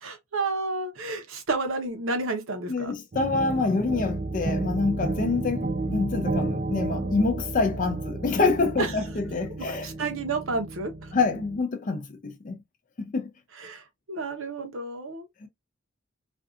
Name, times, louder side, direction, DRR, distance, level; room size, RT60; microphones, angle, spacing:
voice 1, 0.0-2.9 8.8-8.9 9.5-10.9 13.6-15.3, right 3 dB, 70° right, 0.8 m, -31 dB
voice 2, 2.7-9.9 11.1-12.6 13.0-13.3 15.4-15.5, left 3 dB, 35° left, 0.4 m, -26 dB
sound 1, 3.1-11.6, right 2 dB, 35° right, 0.5 m, -32 dB
2.6 x 2.4 x 2.4 m
head